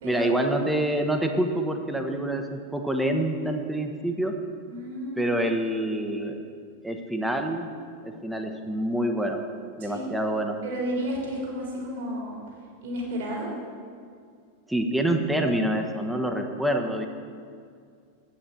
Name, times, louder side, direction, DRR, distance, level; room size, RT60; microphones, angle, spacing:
voice 1, 0.0-4.4 5.2-6.4 6.8-7.7 8.0-9.4 9.8-10.6 14.7-17.1, right 1 dB, 5° right, 4 dB, 1.1 m, -26 dB
voice 2, 4.7-5.3 9.8-10.1 10.6-12.4 12.8-13.5, equal, 60° right, -2 dB, 2.9 m, -32 dB
8.5 x 8.1 x 7.1 m, 2.2 s
figure-of-eight pair, 90°, 0 cm